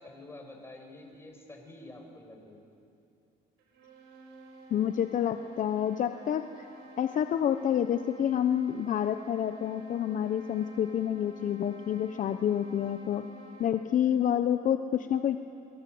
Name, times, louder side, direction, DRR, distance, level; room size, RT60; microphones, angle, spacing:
voice 1, 0.0-2.6, left 2 dB, 15° left, 2 dB, 5.7 m, -48 dB
sound 1, 3.6-13.9, right 2 dB, 90° right, 6.4 m, -51 dB
voice 2, 4.7-6.7 7.0-13.2 13.6-15.4, left 9 dB, 50° left, 9 dB, 0.9 m, -28 dB
29.0 x 23.5 x 7.9 m, 2.5 s
cardioid pair, 110°, 17 cm